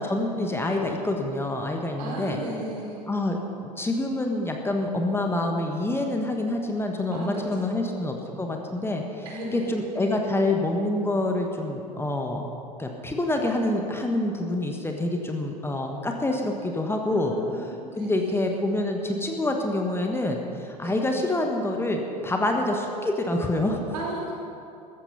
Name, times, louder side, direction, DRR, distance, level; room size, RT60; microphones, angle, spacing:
voice 1, 0.0-2.4 3.1-3.4 3.6-9.3 9.5-12.4 12.8-23.8, left 1 dB, 10° left, 2 dB, 1.4 m, -27 dB
voice 2, 2.0-3.0 7.1-7.9 9.2-10.1 17.0-18.5 20.8-21.0 23.9-24.3, right 1 dB, 65° right, -3 dB, 4.6 m, -36 dB
15.0 x 13.5 x 5.7 m, 2.6 s
figure-of-eight pair, 75°, 21 cm